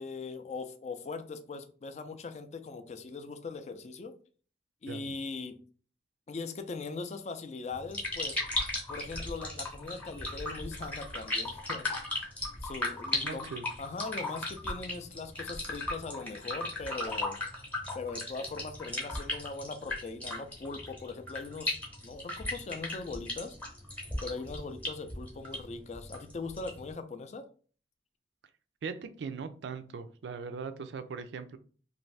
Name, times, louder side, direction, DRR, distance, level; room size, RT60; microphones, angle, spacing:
voice 1, 0.0-4.1 4.8-5.6 6.3-8.4 8.9-11.9 12.1-12.3 12.6-13.5 13.8-17.4 17.9-21.8 22.0-23.6 24.2-27.5, left 4 dB, 40° left, 8 dB, 0.3 m, -40 dB
sound 1, 7.7-26.9, left 2 dB, 10° left, 0.8 m, -37 dB
voice 2, 13.2-13.7 28.8-31.6, right 5 dB, 85° right, 10 dB, 0.4 m, -40 dB
2.5 x 2.5 x 3.2 m, 0.41 s
head